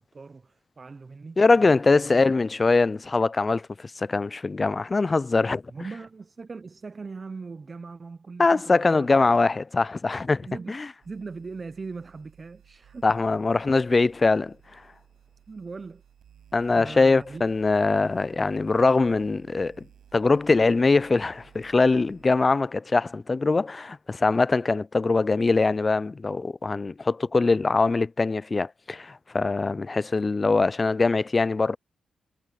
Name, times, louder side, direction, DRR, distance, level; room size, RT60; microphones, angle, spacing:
voice 1, 0.0-2.2 5.7-9.4 10.4-10.8 11.0-13.1 15.5-16.0 16.7-17.5, right 4 dB, 35° right, 0.6 m, -40 dB
voice 2, 1.4-5.6 8.4-10.9 13.0-14.5 16.5-19.8 20.1-31.8, left 3 dB, 30° left, 0.3 m, -22 dB
sound 1, 11.0-22.2, right 9 dB, 80° right, 7.6 m, -57 dB
cardioid pair, 85°, 0 cm